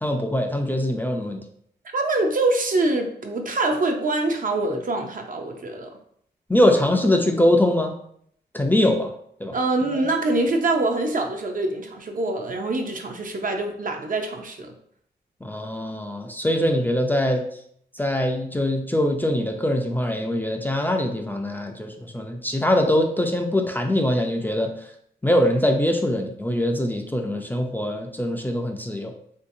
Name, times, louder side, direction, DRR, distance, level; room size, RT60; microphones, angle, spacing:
voice 1, 0.0-1.4 6.5-7.9 8.5-9.1 9.4-9.6 9.9-10.1 15.4-17.4 18.0-24.7 25.2-29.1, left 1 dB, 10° left, 3 dB, 0.4 m, -22 dB
voice 2, 1.9-5.9 9.5-14.7, right 2 dB, 50° right, 3 dB, 0.6 m, -24 dB
3.1 x 2.7 x 2.6 m, 0.67 s
cardioid pair, 65°, 18 cm